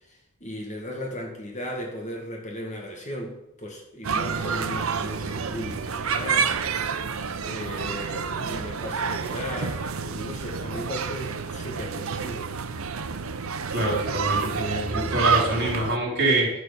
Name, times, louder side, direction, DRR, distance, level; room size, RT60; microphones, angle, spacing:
voice 1, 0.1-6.5 7.4-12.5, equal, 35° left, 0 dB, 2.0 m, -36 dB
sound 1, 4.0-16.0, right 5 dB, 85° right, 0.7 m, -29 dB
voice 2, 13.7-16.5, right 1 dB, 55° right, -1 dB, 4.2 m, -25 dB
11.0 x 6.7 x 7.1 m, 0.81 s
head